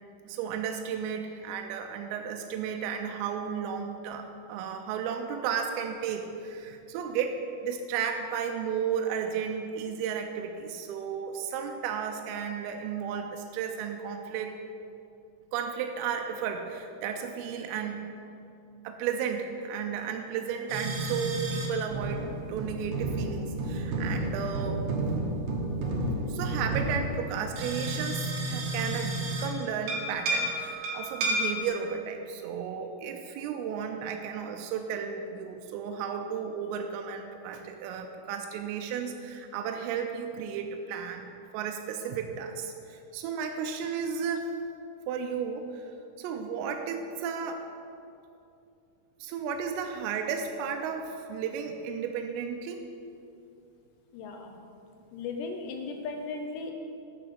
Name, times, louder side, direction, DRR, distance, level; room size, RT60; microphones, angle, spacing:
voice 1, 0.3-14.6 15.5-18.1 18.8-24.8 26.3-44.5 45.1-45.9 46.2-47.7 49.2-52.8, right 7 dB, 85° right, 4 dB, 3.2 m, -34 dB
sound 1, 20.7-21.7 21.9-29.5 29.9-31.7, right 2 dB, 70° right, 3.1 m, -31 dB
voice 2, 54.1-54.6 55.1-56.7, left 4 dB, 80° left, 3 dB, 2.6 m, -36 dB
9.3 x 6.1 x 6.9 m, 2.6 s
omnidirectional pair, 5.8 m